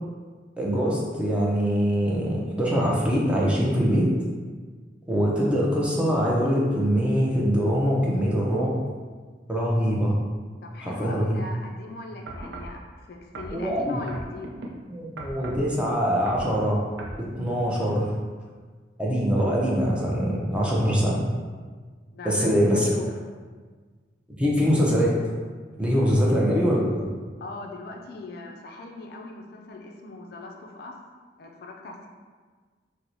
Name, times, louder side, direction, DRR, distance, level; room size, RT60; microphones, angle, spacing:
voice 1, 0.6-4.1 5.1-8.7 9.5-10.1 10.8-11.4 13.5-14.0 14.9-16.8 17.2-18.1 19.0-21.2 22.2-22.9 24.4-25.2 25.8-27.1, equal, 5° right, -4 dB, 0.4 m, -23 dB
voice 2, 10.6-14.5 17.5-17.7 22.1-23.1 26.0-26.4 27.4-30.9 31.4-32.1, left 2 dB, 60° left, 1 dB, 0.3 m, -40 dB
sound 1, 12.3-12.8 13.3-14.7 15.2-15.7 16.1-16.5 17.0-17.2 17.8-17.9, right 2 dB, 85° right, 0.4 m, -38 dB
4.4 x 2.0 x 2.6 m, 1.5 s
head